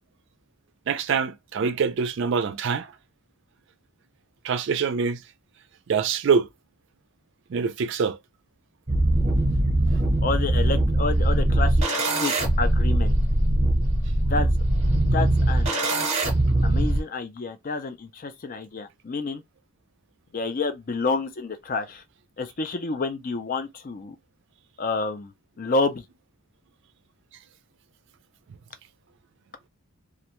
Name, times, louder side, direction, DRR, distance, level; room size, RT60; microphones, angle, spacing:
voice 1, 0.9-2.9 4.4-5.2 5.9-6.5 7.5-8.2, right 6 dB, 55° right, 0.4 m, -24 dB
sound 1, 8.9-17.0, right 1 dB, 30° right, 0.8 m, -21 dB
voice 2, 10.2-11.8 12.2-13.1 14.3-14.5 15.1-15.7 16.6-19.4 20.3-22.0 22.4-24.2 24.8-25.3 25.6-26.0, left 3 dB, 40° left, 0.4 m, -29 dB
2.4 x 2.2 x 2.8 m
head